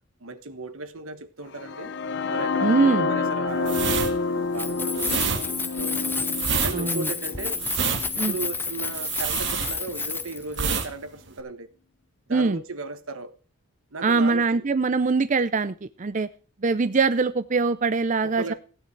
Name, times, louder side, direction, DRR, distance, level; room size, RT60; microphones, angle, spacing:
voice 1, 0.2-1.9 2.3-6.2 6.6-7.6 8.1-11.7 12.3-13.4 13.9-14.7 18.2-18.5, right 3 dB, 80° right, 1.4 m, -36 dB
sound 1, 1.5-9.4, left 4 dB, 55° left, 0.7 m, -29 dB
voice 2, 2.6-3.1 6.7-7.1 8.2-8.3 12.3-12.6 14.0-16.3 16.6-18.4, right 4 dB, 35° right, 0.5 m, -22 dB
sound 2, 3.6-10.2 10.5-10.9 11.2-11.4, right 6 dB, 55° right, 2.0 m, -27 dB
Keys jangling, 4.5-10.6, left 4 dB, 10° left, 0.7 m, -31 dB
16.0 x 9.3 x 4.6 m
head